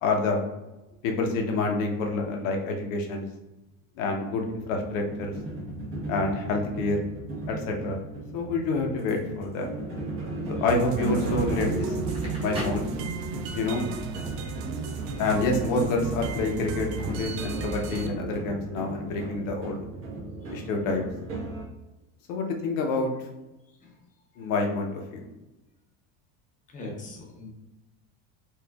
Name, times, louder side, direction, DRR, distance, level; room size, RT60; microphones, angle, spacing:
voice 1, 0.0-0.4 1.0-3.3 4.0-5.3 6.1-7.0 7.5-8.0 8.3-9.8 10.6-11.9 12.4-12.9 13.5-13.9 15.2-19.8 20.5-21.0 22.3-23.1 24.4-25.3, left 3 dB, 85° left, 2 dB, 0.9 m, -27 dB
sound 1, 4.5-21.6, right 2 dB, 35° right, 1.1 m, -35 dB
sound 2, 10.7-18.1, right 4 dB, 60° right, 0.5 m, -35 dB
Crackle, 12.0-13.6, right 1 dB, 15° right, 0.9 m, -38 dB
voice 2, 26.7-27.5, left 2 dB, 20° left, 0 dB, 0.7 m, -41 dB
4.4 x 2.5 x 2.3 m, 1.0 s
cardioid pair, 150°, 38 cm